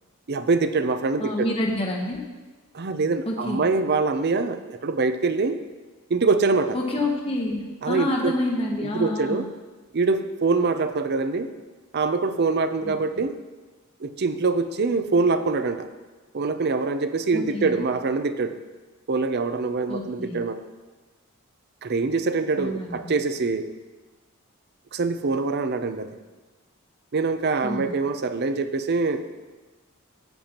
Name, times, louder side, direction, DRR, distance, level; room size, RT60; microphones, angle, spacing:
voice 1, 0.3-1.5 2.7-5.6 6.1-6.8 7.8-8.3 8.8-9.5 9.9-11.5 11.9-13.3 14.0-15.9 16.3-18.6 19.1-20.6 21.8-23.7 24.9-26.1 27.1-29.4, right 3 dB, 50° right, 10 dB, 0.5 m, -24 dB
voice 2, 1.2-2.3 3.3-3.6 6.7-9.5 12.9-13.0 17.3-17.8 19.9-20.4 22.6-23.2 27.6-27.9, left 1 dB, 25° left, 0 dB, 1.0 m, -28 dB
13.5 x 8.9 x 2.9 m, 1.3 s
head